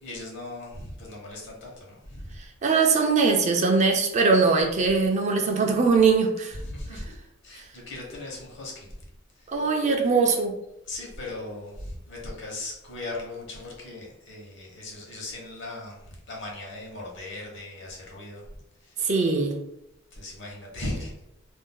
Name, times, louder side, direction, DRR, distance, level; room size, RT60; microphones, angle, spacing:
voice 1, 0.0-2.4 6.5-7.2 7.4-9.6 10.8-19.1 20.1-21.1, left 2 dB, 60° left, -1 dB, 1.0 m, -38 dB
voice 2, 2.6-6.6 9.5-10.5 19.0-19.6, right 4 dB, 35° right, 3 dB, 0.4 m, -21 dB
2.5 x 2.2 x 3.7 m, 0.81 s
head